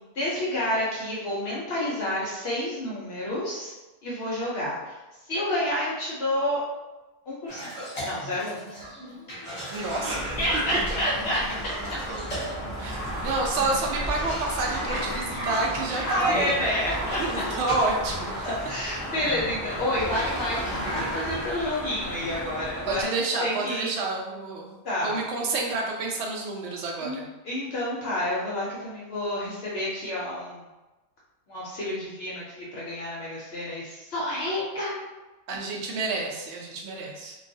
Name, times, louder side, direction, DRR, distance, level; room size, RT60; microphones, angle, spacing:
voice 1, 0.2-3.7 4.0-5.0 5.3-6.6 7.3-7.7 8.0-8.8 10.4-11.4 16.1-17.2 18.5-23.9 24.8-25.2 27.0-27.2 27.4-30.6 31.5-35.0, left 1 dB, 65° left, -6 dB, 0.7 m, -29 dB
Cough, 7.5-21.4, equal, 25° left, 0.8 m, -36 dB
sound 1, 9.7-23.0, equal, 25° right, 0.3 m, -35 dB
voice 2, 9.7-10.2 12.8-16.7 17.1-18.3 22.8-24.8 25.0-27.2 35.5-37.4, right 3 dB, 65° right, 0 dB, 0.7 m, -29 dB
2.3 x 2.3 x 2.5 m, 1.1 s
omnidirectional pair, 1.5 m